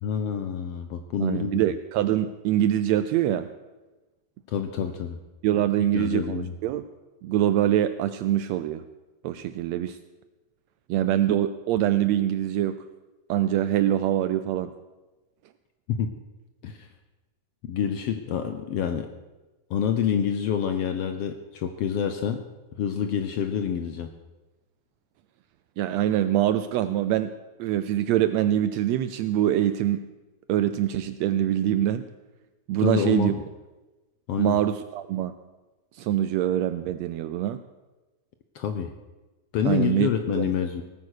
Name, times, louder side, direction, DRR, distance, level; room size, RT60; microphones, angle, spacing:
voice 1, 0.0-1.6 4.5-5.2 5.9-6.5 15.9-16.1 16.6-16.9 17.7-19.1 19.7-22.4 22.8-24.1 32.8-33.3 34.3-34.6 38.5-38.9 39.5-40.8, left 8 dB, 70° left, 8 dB, 1.5 m, -27 dB
voice 2, 1.2-3.5 5.4-6.9 7.2-8.8 9.2-10.0 10.9-12.8 13.3-14.7 25.8-27.3 27.6-30.0 30.5-32.1 32.7-33.3 34.4-35.3 36.0-37.6 39.6-40.1 40.3-40.5, right 12 dB, 80° right, 12 dB, 1.6 m, -24 dB
18.0 x 9.4 x 6.5 m, 1.1 s
omnidirectional pair, 3.5 m